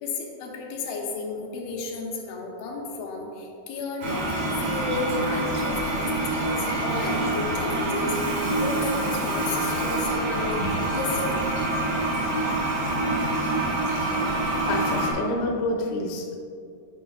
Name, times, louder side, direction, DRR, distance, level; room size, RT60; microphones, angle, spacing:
voice 1, 0.0-10.5 10.9-11.4, left 3 dB, 90° left, 0 dB, 3.0 m, -33 dB
Toilet flush, 4.0-15.1, right 2 dB, 85° right, 4.0 m, -26 dB
voice 2, 14.6-16.4, left 2 dB, 70° left, 1 dB, 1.8 m, -28 dB
8.9 x 5.2 x 4.0 m, 2.4 s
omnidirectional pair, 4.2 m